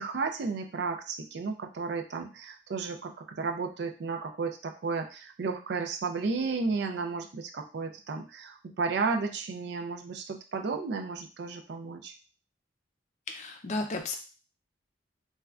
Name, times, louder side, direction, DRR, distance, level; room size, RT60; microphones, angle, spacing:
voice 1, 0.0-12.1, right 4 dB, 60° right, 5 dB, 0.4 m, -33 dB
voice 2, 13.3-14.2, left 2 dB, 40° left, 5 dB, 0.4 m, -33 dB
3.3 x 2.2 x 2.4 m, 0.34 s
head